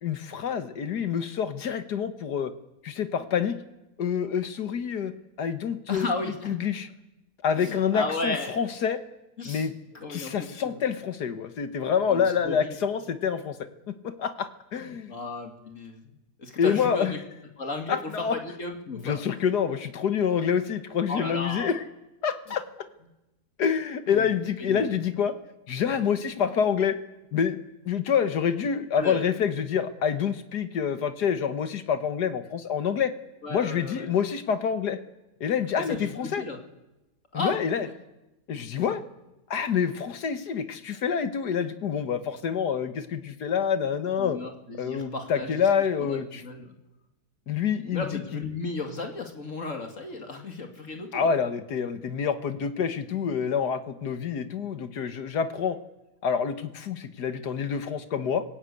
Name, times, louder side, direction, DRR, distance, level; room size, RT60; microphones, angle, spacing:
voice 1, 0.0-2.5 2.8-3.6 4.0-5.1 5.4-6.1 6.5-6.9 7.4-9.0 9.4-9.7 10.1-13.6 13.9-15.1 16.6-17.1 17.9-18.4 18.9-21.8 22.2-22.7 23.6-25.3 25.7-27.0 27.3-27.6 27.9-33.1 33.5-35.0 35.4-36.4 37.3-37.9 38.5-39.0 39.5-44.4 44.8-46.4 47.5-48.4 51.1-55.8 56.2-58.4, left 7 dB, 70° left, 11 dB, 1.8 m, -27 dB
voice 2, 5.9-6.5 7.6-8.6 9.4-9.7 9.9-10.8 12.1-12.7 14.8-16.1 16.4-17.2 17.6-19.2 21.1-21.7 24.1-24.3 24.6-24.9 29.0-29.2 33.4-34.1 35.9-36.6 37.3-37.6 38.8-38.9 44.2-45.6 46.0-46.8 47.9-51.3, left 3 dB, 50° left, 4 dB, 2.7 m, -34 dB
26.5 x 16.5 x 8.4 m, 0.99 s
omnidirectional pair, 1.8 m